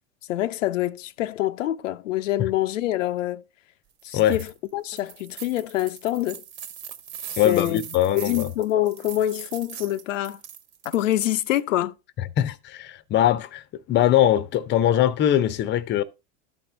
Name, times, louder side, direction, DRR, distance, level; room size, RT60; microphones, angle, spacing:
voice 1, 0.3-3.4 4.0-6.4 7.4-7.8 8.1-10.4 10.8-11.9, left 14 dB, 80° left, 0.6 m, -26 dB
sound 1, 4.0-4.5 4.9-11.6, right 9 dB, 65° right, 1.4 m, -41 dB
voice 2, 7.4-8.5 12.4-16.0, left 11 dB, 30° left, 0.7 m, -21 dB
13.0 x 4.4 x 3.3 m
hypercardioid pair, 105°, 38 cm